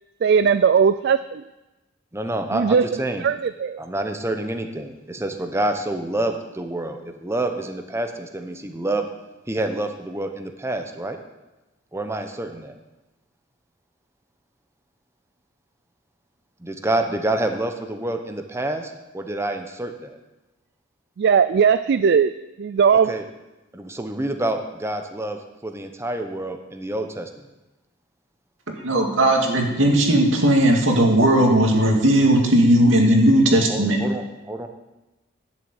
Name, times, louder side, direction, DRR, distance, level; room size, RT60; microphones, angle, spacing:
voice 1, 0.2-1.4 2.5-3.8 21.2-23.1, right 6 dB, 60° right, 13 dB, 0.3 m, -19 dB
voice 2, 2.1-3.2 3.8-9.1 9.5-11.2 11.9-12.7 16.6-20.2 22.9-23.2 23.7-27.5 33.7-34.7, right 1 dB, 15° right, 5 dB, 0.9 m, -28 dB
voice 3, 28.8-34.0, right 1 dB, 90° right, 1 dB, 2.3 m, -17 dB
11.0 x 7.2 x 8.1 m, 1.0 s
head